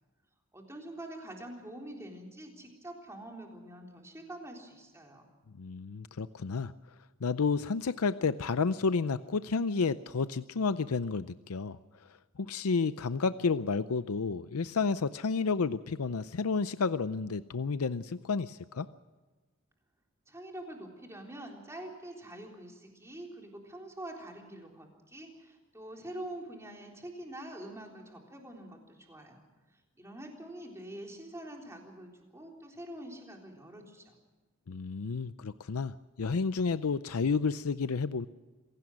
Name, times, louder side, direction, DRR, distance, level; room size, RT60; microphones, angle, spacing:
voice 1, 0.5-5.3 20.3-29.4 29.7-34.1, right 1 dB, 15° right, 1 dB, 3.8 m, -45 dB
voice 2, 5.6-6.7 7.2-11.8 12.4-18.9 34.7-38.3, left 4 dB, 90° left, 13 dB, 0.6 m, -31 dB
26.0 x 17.5 x 6.4 m, 1.3 s
head